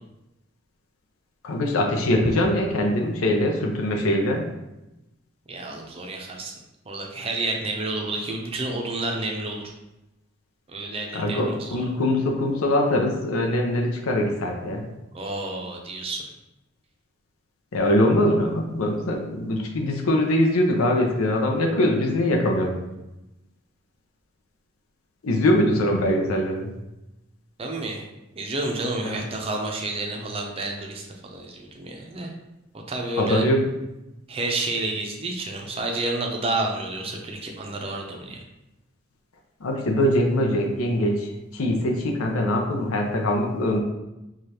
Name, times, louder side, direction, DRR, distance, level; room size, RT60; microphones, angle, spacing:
voice 1, 1.4-4.4 11.1-14.9 17.7-22.8 25.2-26.7 29.0-29.2 33.2-33.6 39.6-41.3 41.5-43.8, left 1 dB, 85° left, 1 dB, 0.6 m, -22 dB
voice 2, 5.5-6.5 6.9-9.6 10.7-11.9 15.1-16.2 27.6-28.0 28.4-32.3 32.9-33.4 34.3-38.4, right 2 dB, 30° right, 1 dB, 0.5 m, -30 dB
4.9 x 2.4 x 2.8 m, 0.95 s
head